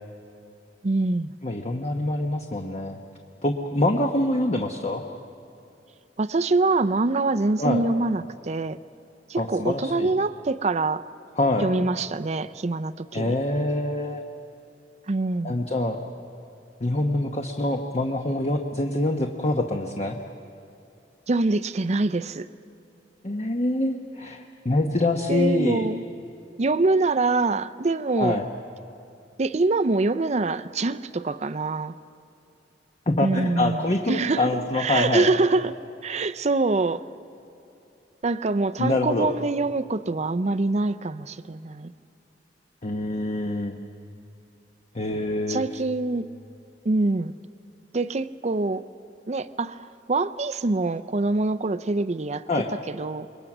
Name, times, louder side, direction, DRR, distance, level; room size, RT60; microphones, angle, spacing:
voice 1, 0.8-1.3 6.2-8.8 9.3-11.0 11.6-13.3 15.1-15.6 21.3-22.5 25.3-26.0 26.6-28.4 29.4-31.9 33.2-34.4 34.8-35.8 36.0-37.0 38.2-41.9 45.5-46.3 46.8-47.3 47.9-48.8 49.3-49.8 50.1-52.4 52.9-53.3, right 3 dB, 40° right, 0.6 m, -24 dB
voice 2, 1.4-3.0 3.4-5.0 7.6-7.8 9.4-10.1 11.4-11.7 13.1-14.2 15.4-16.0 16.8-20.2 23.2-25.8 28.2-28.5 33.1-35.3 38.8-39.3 42.8-43.8 44.9-45.6 52.5-52.7, left 2 dB, 40° left, 1.1 m, -25 dB
27.5 x 22.0 x 6.1 m
head